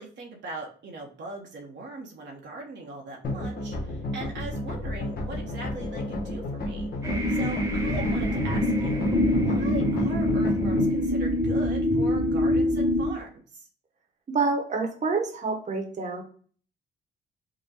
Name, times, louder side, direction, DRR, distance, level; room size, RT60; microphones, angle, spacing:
voice 1, 0.0-6.9 7.3-9.0 9.4-13.7, right 2 dB, 65° right, 0 dB, 0.9 m, -40 dB
sound 1, 3.2-10.9, left 1 dB, 50° left, 1.1 m, -31 dB
sound 2, 7.0-13.1, left 1 dB, 15° right, 1.1 m, -25 dB
voice 2, 14.3-16.2, right 4 dB, 35° right, 2 dB, 1.0 m, -27 dB
3.7 x 2.1 x 4.1 m, 0.43 s
cardioid pair, 90°, 20 cm